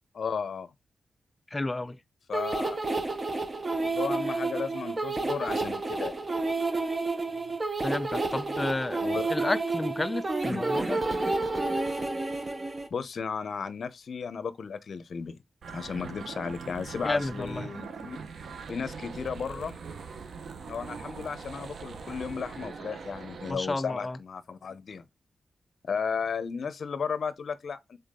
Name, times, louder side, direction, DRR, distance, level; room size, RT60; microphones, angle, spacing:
voice 1, 0.1-0.7 2.3-2.8 3.8-6.2 9.0-9.3 10.5-10.7 12.9-15.4 15.7-18.2 18.7-19.8 20.7-25.1 25.9-28.0, left 6 dB, 60° left, 0.7 m, -34 dB
voice 2, 1.5-2.0 7.8-9.0 9.3-11.0 17.0-17.7 23.5-24.2, left 2 dB, 20° left, 0.4 m, -31 dB
sound 1, 2.3-12.9, right 3 dB, 25° right, 0.8 m, -30 dB
sound 2, 15.6-23.5, right 5 dB, 65° right, 0.8 m, -42 dB
7.1 x 4.0 x 3.7 m
wide cardioid pair, 140°, 0 cm